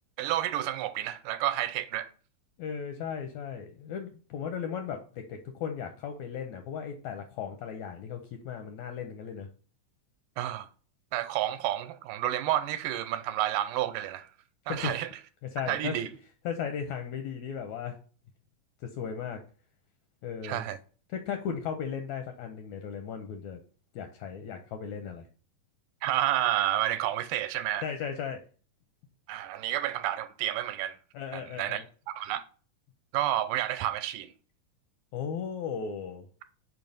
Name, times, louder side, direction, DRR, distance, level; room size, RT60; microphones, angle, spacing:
voice 1, 0.2-2.1 10.4-10.7 11.1-14.3 14.7-15.1 15.7-16.1 20.4-20.8 26.0-27.9 29.3-31.0 31.3-32.4 33.1-34.3, right 12 dB, 80° right, 2.1 m, -30 dB
voice 2, 2.6-8.2 8.4-9.5 14.7-15.0 15.5-15.9 16.4-18.0 18.9-19.4 20.2-20.6 21.1-23.6 23.9-25.2 27.8-28.4 31.1-31.8 35.1-36.3, left 7 dB, 80° left, 1.7 m, -36 dB
5.6 x 4.7 x 5.2 m
omnidirectional pair, 3.9 m